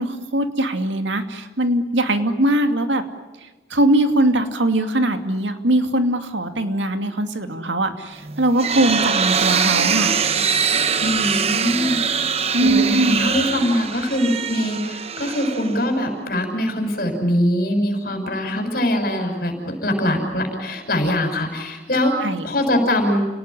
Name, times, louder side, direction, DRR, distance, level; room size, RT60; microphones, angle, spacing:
voice 1, 0.0-3.0 3.7-10.2 12.5-13.2 22.0-22.5, right 1 dB, 80° right, 7 dB, 2.7 m, -21 dB
sound 1, 8.2-16.1, right 6 dB, 35° right, 1.1 m, -23 dB
voice 2, 11.0-22.1 22.4-23.3, left 1 dB, 50° left, 5 dB, 6.4 m, -22 dB
30.0 x 19.0 x 9.9 m, 1.1 s
head